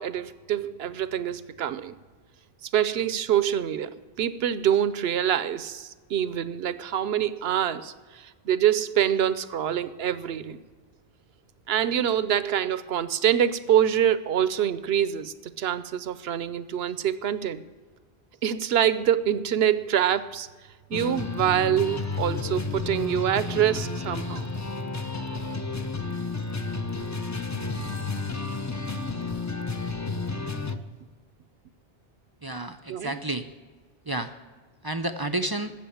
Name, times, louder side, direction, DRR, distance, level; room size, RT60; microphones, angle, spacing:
voice 1, 0.0-1.9 2.6-10.6 11.7-17.6 18.4-20.5 20.9-24.5 32.9-33.2, right 10 dB, 80° right, 14 dB, 0.9 m, -25 dB
sound 1, 20.9-30.8, left 3 dB, 20° left, 0.6 m, -31 dB
voice 2, 32.4-33.5 34.1-34.3 34.8-35.7, right 2 dB, 30° right, 7 dB, 0.5 m, -30 dB
13.5 x 7.7 x 8.6 m, 1.4 s
omnidirectional pair, 1.0 m